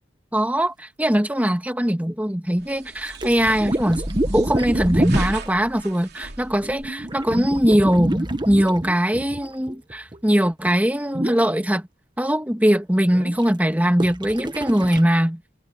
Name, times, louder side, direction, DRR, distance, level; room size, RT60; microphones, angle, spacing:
voice 1, 0.3-4.1 4.3-11.9 12.2-15.4, equal, 10° right, 2.0 m, -21 dB
sound 1, 2.6-7.6, right 1 dB, 60° right, 3.3 m, -33 dB
sound 2, 3.1-5.4 6.6-10.2 10.6-10.8 11.1-11.5 13.1-13.5 14.0-15.0, right 1 dB, 25° right, 1.2 m, -27 dB
head